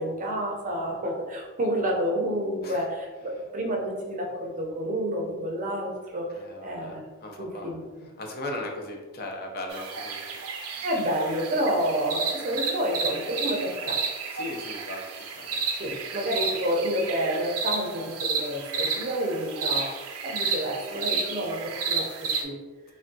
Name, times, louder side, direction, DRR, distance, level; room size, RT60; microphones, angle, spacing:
voice 1, 0.0-6.3 6.6-7.0 7.4-7.9 10.8-14.0 15.7-19.9 20.2-22.1 22.4-22.6, equal, 35° right, -1 dB, 0.5 m, -29 dB
voice 2, 6.3-7.7 8.2-10.2 14.3-15.0 15.3-15.6, left 1 dB, 45° left, 1 dB, 0.5 m, -37 dB
sound 1, 9.7-22.4, right 4 dB, 85° right, 0.5 m, -32 dB
3.4 x 2.2 x 2.6 m, 1.3 s
head